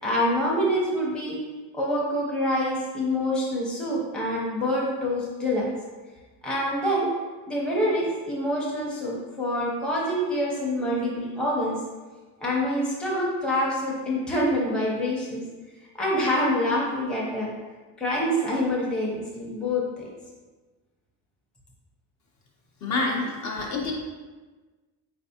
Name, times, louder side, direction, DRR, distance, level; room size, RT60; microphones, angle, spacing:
voice 1, 0.0-1.4 1.7-5.7 6.4-7.1 7.5-11.8 12.4-15.4 16.0-17.5 18.0-20.1, equal, ahead, -5 dB, 0.6 m, -26 dB
voice 2, 22.8-23.9, left 3 dB, 40° left, -1 dB, 0.6 m, -27 dB
4.1 x 3.3 x 2.8 m, 1.3 s
cardioid pair, 140°, 43 cm